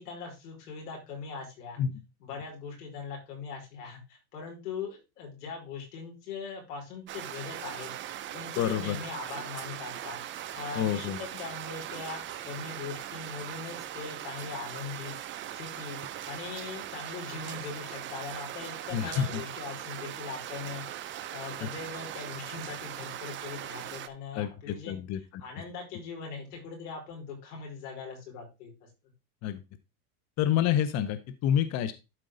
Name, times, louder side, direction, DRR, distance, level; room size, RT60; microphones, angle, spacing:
voice 1, 0.0-1.8 2.2-10.2 10.5-15.1 15.5-16.0 16.3-25.0 25.4-28.9, left 5 dB, 90° left, 0 dB, 5.2 m, -41 dB
sound 1, 7.1-24.1, right 11 dB, 25° right, 0.6 m, -40 dB
voice 2, 8.6-9.0 10.8-11.2 18.9-19.4 21.6-21.7 24.3-25.4 29.4-29.6 30.4-31.9, left 10 dB, 35° left, 12 dB, 0.7 m, -28 dB
12.0 x 4.5 x 3.8 m, 0.27 s
supercardioid pair, 130°, 45 cm